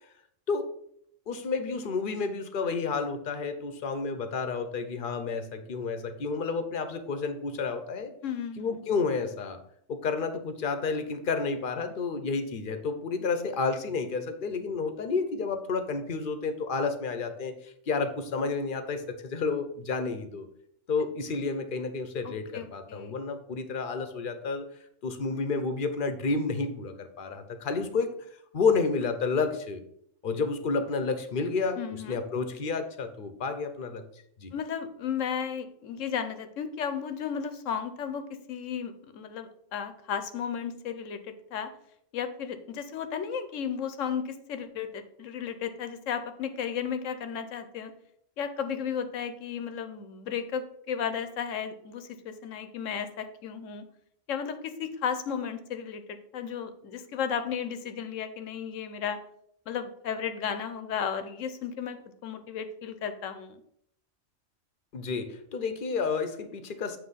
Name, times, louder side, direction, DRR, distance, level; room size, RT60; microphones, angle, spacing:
voice 1, 1.3-8.1 8.6-9.6 9.9-20.5 20.9-24.7 25.0-28.1 28.5-29.8 30.2-31.8 32.1-34.0 34.4-34.5 64.9-67.0, left 4 dB, 50° left, 8 dB, 0.8 m, -30 dB
voice 2, 8.2-8.9 22.2-23.1 31.8-32.2 34.5-41.7 42.1-47.9 48.4-53.8 54.3-59.2 59.7-63.6, left 7 dB, 85° left, 10 dB, 1.1 m, -34 dB
7.9 x 3.1 x 5.5 m, 0.70 s
omnidirectional pair, 1.3 m